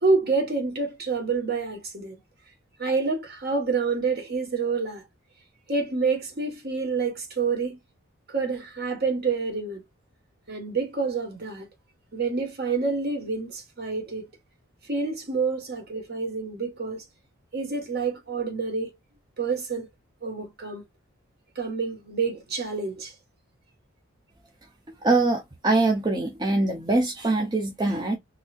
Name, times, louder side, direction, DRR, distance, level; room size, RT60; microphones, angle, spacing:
voice 1, 0.0-2.2 2.8-5.0 5.7-7.8 8.3-9.8 10.5-11.7 12.1-14.3 14.8-17.0 17.5-18.9 19.4-19.9 20.2-20.8 21.6-23.1, right 4 dB, 45° right, 1.2 m, -28 dB
voice 2, 25.0-28.2, right 2 dB, 20° right, 0.6 m, -23 dB
4.0 x 2.7 x 2.4 m
head